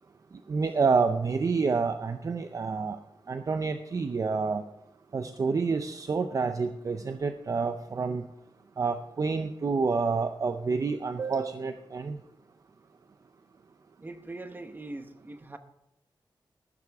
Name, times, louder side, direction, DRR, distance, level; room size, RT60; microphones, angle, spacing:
voice 1, 0.5-3.0 3.3-4.6 5.1-8.3 8.8-12.2, right 4 dB, 40° right, 8 dB, 0.5 m, -28 dB
voice 2, 14.0-15.6, right 2 dB, 20° right, 8 dB, 0.9 m, -41 dB
14.0 x 11.5 x 3.5 m, 0.86 s
wide cardioid pair, 165°, 9 cm